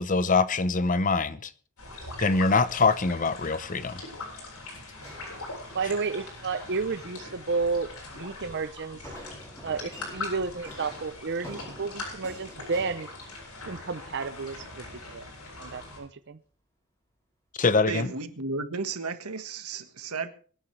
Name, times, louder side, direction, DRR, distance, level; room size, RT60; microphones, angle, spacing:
voice 1, 0.0-1.5 2.2-4.0 17.6-18.1, left 4 dB, 35° left, 0.7 m, -24 dB
sound 1, 1.8-16.0, left 2 dB, 85° left, 7.9 m, -42 dB
sound 2, 5.0-6.1 6.8-7.3 9.0-13.9, equal, 10° left, 5.8 m, -47 dB
voice 2, 5.7-9.0 9.6-13.1 13.7-14.9 15.1-15.2 15.6-16.4, right 4 dB, 50° right, 0.6 m, -31 dB
voice 3, 17.9-20.3, right 4 dB, 85° right, 1.5 m, -33 dB
23.5 x 10.0 x 3.3 m
head